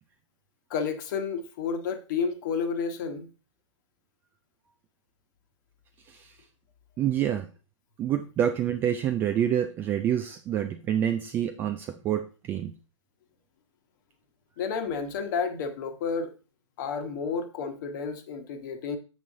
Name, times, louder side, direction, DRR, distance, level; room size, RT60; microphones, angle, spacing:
voice 1, 0.7-3.3 14.6-16.3 16.8-19.0, left 5 dB, 40° left, 8 dB, 1.2 m, -31 dB
voice 2, 7.0-7.5 8.0-12.7, right 10 dB, 15° right, 7 dB, 0.3 m, -27 dB
7.4 x 5.9 x 3.7 m, 0.35 s
figure-of-eight pair, 125°, 16 cm